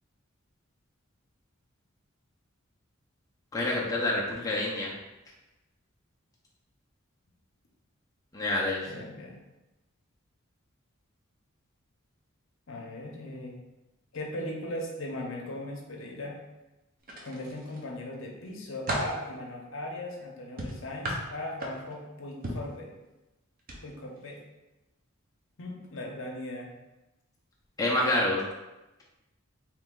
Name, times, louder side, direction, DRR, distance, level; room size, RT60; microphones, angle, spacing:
voice 1, 3.5-4.9 8.3-8.8 27.8-28.4, left 1 dB, 15° left, -4 dB, 0.5 m, -27 dB
voice 2, 8.8-9.4 12.7-13.6 14.1-16.4 17.2-22.9 23.8-24.4 25.6-26.7, left 1 dB, 65° left, 0 dB, 0.7 m, -38 dB
sound 1, 17.0-17.8 18.3-19.2 20.6-22.0 22.4-22.7 23.6-23.8 24.2-24.3, right 1 dB, 45° right, 0.7 m, -35 dB
3.1 x 2.9 x 3.6 m, 1.0 s
head